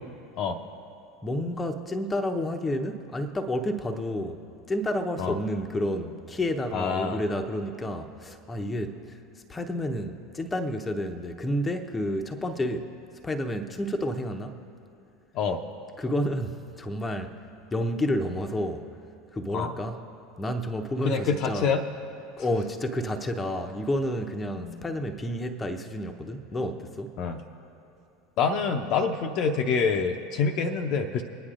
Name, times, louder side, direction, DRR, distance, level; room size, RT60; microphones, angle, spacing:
voice 1, 1.2-4.4 4.7-9.2 9.5-12.9 13.2-14.6 16.0-17.3 17.7-18.9 19.3-20.0 20.4-21.7 22.4-27.1, left 1 dB, 15° left, 4 dB, 0.8 m, -30 dB
voice 2, 6.7-7.2 15.3-15.6 19.5-19.7 21.0-21.8 24.6-24.8 27.2-27.4 28.4-31.2, left 5 dB, 50° left, 5 dB, 0.7 m, -26 dB
23.5 x 9.7 x 2.5 m, 2.7 s
figure-of-eight pair, 75°, 0 cm